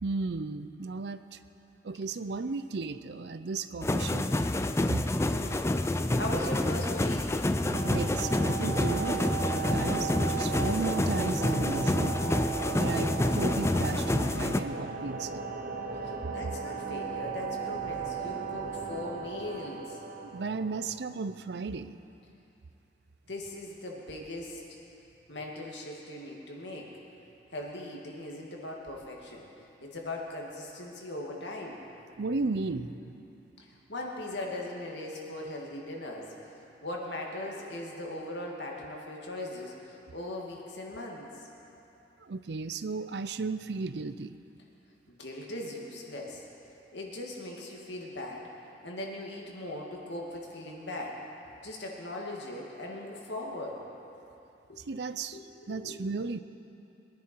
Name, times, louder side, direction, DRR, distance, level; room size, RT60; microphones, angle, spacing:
voice 1, 0.0-1.4 1.8-4.3 7.8-12.2 12.7-15.5 20.3-22.0 32.2-33.1 42.2-44.4 54.8-55.4 55.7-56.4, right 4 dB, 65° right, 12 dB, 0.5 m, -35 dB
sound 1, 3.8-14.6, left 1 dB, 15° left, 0.4 m, -28 dB
voice 2, 5.3-5.7 6.1-7.3 16.0-20.0 23.3-24.6 25.3-26.9 27.5-29.4 29.8-31.8 33.6-36.3 36.8-41.3 45.1-46.4 46.9-48.5 48.8-51.2 51.6-53.8 54.7-54.8 55.3-56.0, left 1 dB, 75° left, -1 dB, 2.2 m, -39 dB
sound 2, 7.6-21.2, right 5 dB, 45° right, 0.9 m, -36 dB
22.5 x 10.5 x 4.6 m, 2.8 s
head